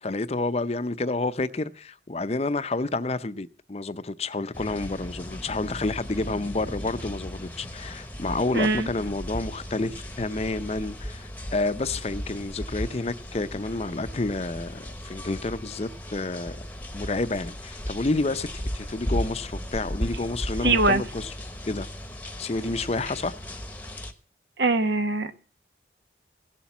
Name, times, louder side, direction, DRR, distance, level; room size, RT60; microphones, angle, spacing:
voice 1, 0.0-16.6 16.9-18.5 18.7-21.3 21.7-21.9 22.4-23.3, left 2 dB, 35° left, 0.6 m, -29 dB
sound 1, 4.5-24.1, equal, 10° left, 1.0 m, -36 dB
voice 2, 8.5-8.9 20.6-21.0 24.6-25.3, right 2 dB, 75° right, 1.2 m, -22 dB
16.5 x 7.3 x 7.1 m
head